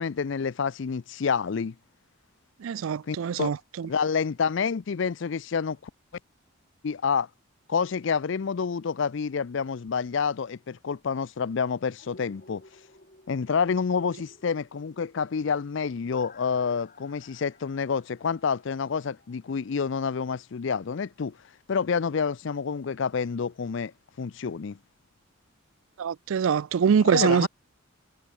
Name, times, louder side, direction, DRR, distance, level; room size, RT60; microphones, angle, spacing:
voice 1, 0.0-1.7 3.1-3.5 3.8-5.9 6.8-7.3 7.7-12.6 13.3-21.4 21.7-23.9 24.2-24.8 27.0-27.5, left 6 dB, 60° left, 0.4 m, -28 dB
voice 2, 2.6-3.9 26.0-27.5, right 7 dB, 75° right, 0.4 m, -24 dB
sound 1, 12.0-19.9 20.2-20.3, left 2 dB, 40° left, 6.9 m, -56 dB
head